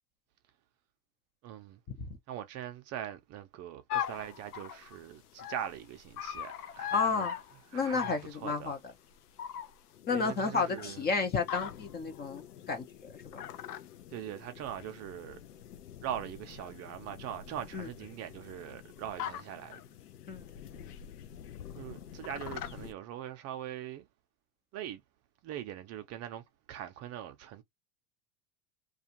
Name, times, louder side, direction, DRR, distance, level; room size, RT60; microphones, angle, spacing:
voice 1, 1.4-1.8 2.3-7.4 7.7-8.8 10.1-11.1 14.1-15.4 16.0-19.8 21.7-24.1 24.7-25.0 25.4-27.6, right 11 dB, 35° right, 0.5 m, -42 dB
sound 1, 3.9-22.9, left 10 dB, 90° left, 0.6 m, -43 dB
voice 2, 6.9-7.3 7.7-8.8 10.1-12.8 13.1-13.4 17.7-17.9 20.3-20.4, left 4 dB, 20° left, 0.5 m, -31 dB
2.4 x 2.3 x 2.8 m
hypercardioid pair, 100°, 44 cm